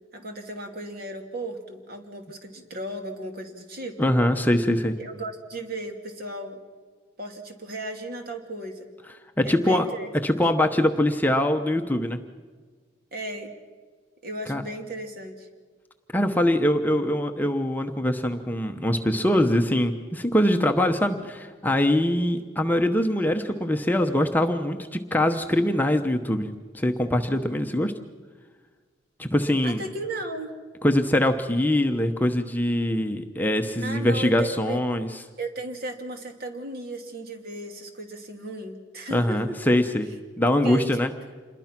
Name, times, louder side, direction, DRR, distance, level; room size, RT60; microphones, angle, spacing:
voice 1, 0.1-4.0 5.0-6.6 7.2-8.9 9.4-10.1 13.1-13.5 14.2-15.5 29.6-30.5 33.8-34.8 35.4-39.6 40.5-41.0, right 2 dB, 50° right, 4 dB, 2.8 m, -35 dB
voice 2, 4.0-4.9 9.4-9.9 10.2-12.2 14.5-14.6 16.1-27.9 29.2-29.8 30.8-35.1 39.1-40.1 40.4-41.1, left 1 dB, 10° left, 5 dB, 0.9 m, -23 dB
27.5 x 21.5 x 6.0 m, 1.5 s
head